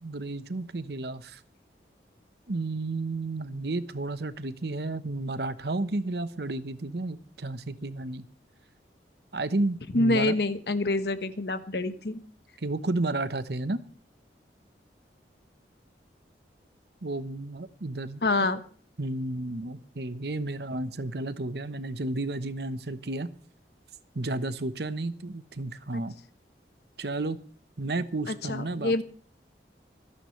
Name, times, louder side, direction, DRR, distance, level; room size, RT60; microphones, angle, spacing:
voice 1, 0.0-1.4 2.5-8.3 9.3-10.3 12.6-13.8 17.0-18.2 19.0-23.3 24.1-26.1 27.0-27.4 27.8-29.0, right 2 dB, 70° right, 13 dB, 1.0 m, -32 dB
voice 2, 9.9-12.2 18.2-18.6 25.9-26.0 28.3-29.0, left 2 dB, 70° left, 10 dB, 1.2 m, -26 dB
27.0 x 10.0 x 3.2 m, 0.43 s
head